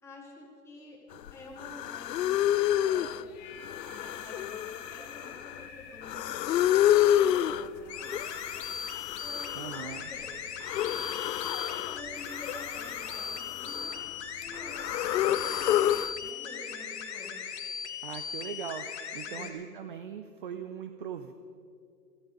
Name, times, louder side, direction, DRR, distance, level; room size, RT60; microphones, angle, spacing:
voice 1, 0.0-1.0 1.3-3.4 3.9-8.4 9.2-10.4 11.7-13.9 14.4-15.8 16.2-17.4 19.3-19.6, left 2 dB, 5° left, -4 dB, 2.5 m, -48 dB
sound 1, 1.3-1.4 1.6-3.2 3.6-5.6 6.0-7.7 8.1-10.0 10.6-12.0 12.3-14.1 14.4-16.1, left 11 dB, 90° left, 0.6 m, -29 dB
sound 2, 3.1-9.2, left 6 dB, 20° left, 1.5 m, -48 dB
sound 3, 7.9-19.5, left 7 dB, 45° left, 1.7 m, -39 dB
voice 2, 9.5-10.1 18.0-21.3, right 8 dB, 35° right, 9 dB, 0.5 m, -40 dB
16.5 x 14.5 x 5.3 m, 2.4 s
hypercardioid pair, 155°, 47 cm